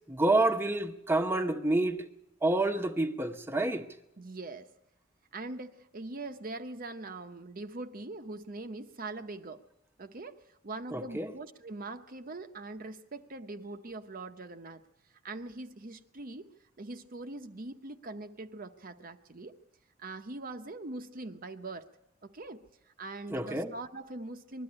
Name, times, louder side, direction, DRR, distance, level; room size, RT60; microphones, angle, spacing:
voice 1, 0.1-2.1 2.4-3.8 10.9-11.3 23.3-23.7, right 2 dB, 10° right, 0.9 m, -28 dB
voice 2, 4.2-4.7 5.3-9.6 10.0-14.8 15.2-16.5 16.8-19.6 20.0-21.9 22.2-24.6, right 2 dB, 45° right, 0.8 m, -42 dB
21.0 x 13.0 x 9.8 m
head